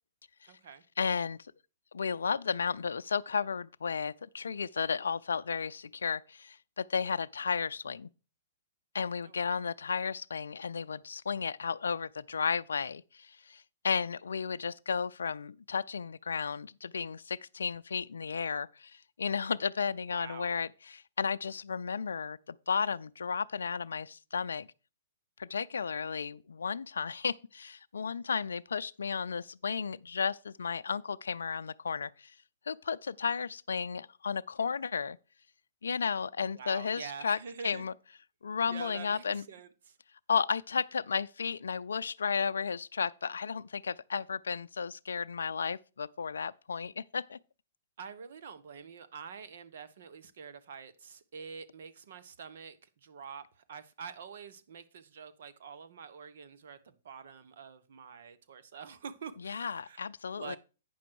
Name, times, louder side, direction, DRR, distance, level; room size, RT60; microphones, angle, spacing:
voice 1, 0.5-0.8 9.2-9.6 20.1-20.6 36.5-37.8 38.7-40.0 48.0-60.1 60.3-60.6, right 6 dB, 65° right, 1.1 m, -46 dB
voice 2, 1.0-1.4 1.9-8.1 8.9-24.7 25.4-32.3 32.7-35.2 35.8-37.4 37.6-37.9 38.4-39.4 40.3-47.4 59.4-60.6, left 6 dB, 85° left, 0.4 m, -33 dB
9.1 x 6.1 x 4.7 m
hypercardioid pair, 125°, 0 cm